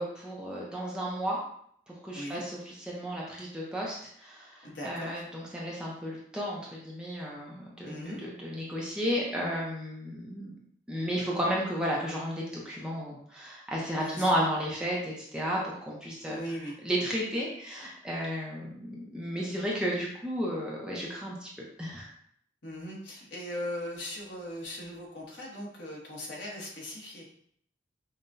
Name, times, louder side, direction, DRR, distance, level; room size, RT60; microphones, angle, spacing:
voice 1, 0.0-1.4 2.0-10.5 10.9-16.4 16.8-21.5 21.8-22.1, equal, 5° right, -4 dB, 0.6 m, -33 dB
voice 2, 4.6-5.2 7.8-8.2 13.9-14.3 16.2-16.8 17.1-17.2 22.6-27.2, left 1 dB, 70° left, -2 dB, 1.0 m, -39 dB
5.5 x 2.2 x 2.6 m, 0.67 s
head